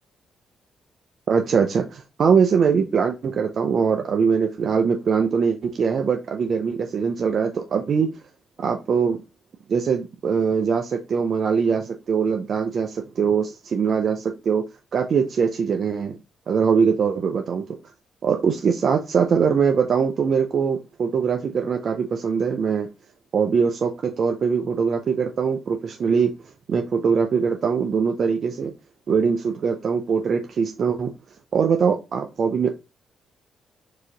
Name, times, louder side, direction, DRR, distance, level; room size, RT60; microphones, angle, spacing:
voice 1, 1.3-8.1 8.6-9.2 9.7-14.7 14.9-16.2 16.5-17.7 18.2-22.9 23.3-28.7 29.1-31.1 31.5-32.7, right 6 dB, 55° right, 0.6 m, -22 dB
4.7 x 2.9 x 3.8 m
cardioid pair, 85°, 0 cm